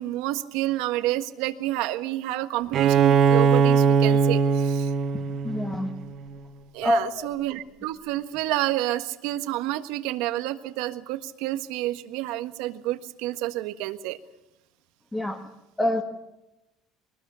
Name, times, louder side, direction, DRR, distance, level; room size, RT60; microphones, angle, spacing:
voice 1, 0.0-4.9 6.7-14.2, right 15 dB, 85° right, 9 dB, 1.5 m, -29 dB
Bowed string instrument, 2.7-6.3, right 6 dB, 45° right, 1.2 m, -21 dB
voice 2, 5.4-5.9 6.8-7.3 15.1-15.4 15.8-16.0, left 1 dB, 10° left, 2 dB, 1.7 m, -25 dB
23.0 x 20.0 x 7.0 m, 0.94 s
cardioid pair, 150°, 0 cm